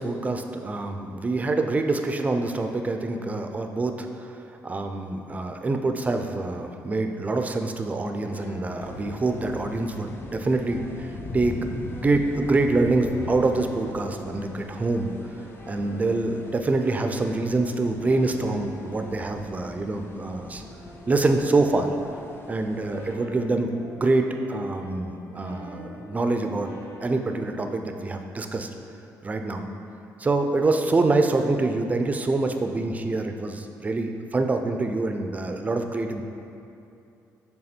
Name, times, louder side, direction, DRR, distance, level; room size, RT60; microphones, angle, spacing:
voice 1, 0.0-4.3 4.6-15.1 15.7-20.6 21.1-21.9 22.5-26.7 27.0-28.7 29.2-29.7 30.2-36.2, right 2 dB, 25° right, 5 dB, 0.4 m, -25 dB
sound 1, 8.2-27.8, equal, 55° left, 1.2 m, -45 dB
sound 2, 8.8-23.1, left 3 dB, 35° left, 0.5 m, -41 dB
6.5 x 3.5 x 4.3 m, 2.7 s
cardioid pair, 110°, 6 cm